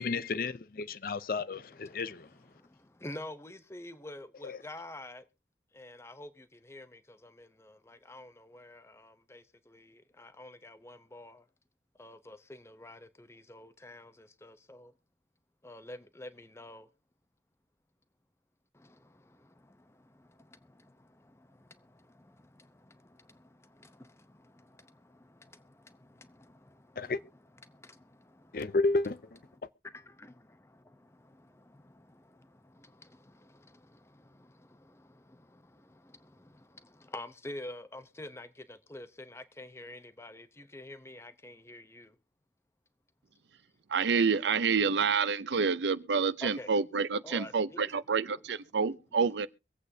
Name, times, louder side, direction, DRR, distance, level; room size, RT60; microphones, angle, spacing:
voice 1, 0.0-2.3 27.0-27.2 28.5-29.2, left 3 dB, 50° left, 0.5 m, -31 dB
voice 2, 1.7-5.2 5.7-11.5 12.0-14.9 15.6-16.9 18.7-28.8 29.5-42.2 46.4-46.7 47.0-48.0, left 1 dB, 15° left, 0.7 m, -49 dB
voice 3, 43.9-49.5, right 5 dB, 75° right, 0.6 m, -28 dB
24.5 x 8.2 x 2.7 m
head